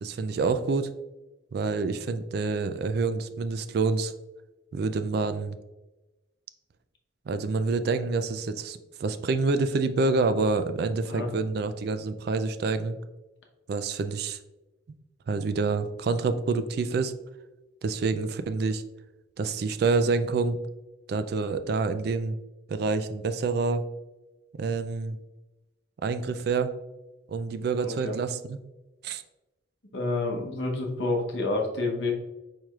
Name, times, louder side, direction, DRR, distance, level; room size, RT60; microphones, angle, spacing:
voice 1, 0.0-0.9 1.5-4.1 4.7-5.6 7.3-12.9 13.7-14.4 15.3-17.1 17.8-18.8 19.4-20.6 21.1-22.4 22.7-23.8 24.6-25.2 26.0-26.7 27.3-28.6 29.0-29.2, right 4 dB, 55° right, 11 dB, 0.3 m, -27 dB
voice 2, 27.8-28.2 29.9-32.1, left 2 dB, 60° left, 1 dB, 0.9 m, -29 dB
4.7 x 4.4 x 2.3 m, 1.0 s
head